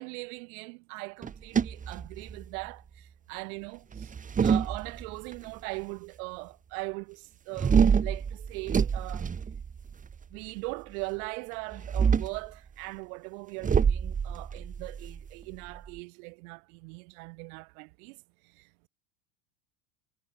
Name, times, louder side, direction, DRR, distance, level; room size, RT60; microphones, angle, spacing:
voice 1, 0.0-4.1 4.4-9.3 10.3-18.2, right 31 dB, 65° right, 4.1 m, -40 dB
sound 1, 1.2-2.6 3.9-5.3 7.6-10.1 11.7-12.5 13.6-16.0, right 6 dB, 15° right, 2.2 m, -26 dB
supercardioid pair, 160°, 47 cm